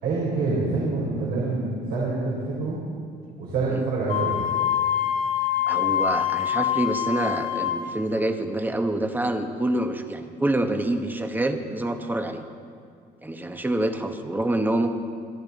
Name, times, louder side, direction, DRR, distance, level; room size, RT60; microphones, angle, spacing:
voice 1, 0.0-2.8 3.4-4.4, right 3 dB, 75° right, -5 dB, 3.9 m, -26 dB
Wind instrument woodwind instrument, 4.1-7.8, left 10 dB, 65° left, 2.7 m, -25 dB
voice 2, 5.6-12.4 13.2-15.0, right 1 dB, 10° right, 6 dB, 1.1 m, -26 dB
22.5 x 13.0 x 4.0 m, 2.2 s
cardioid pair, 110°, 17 cm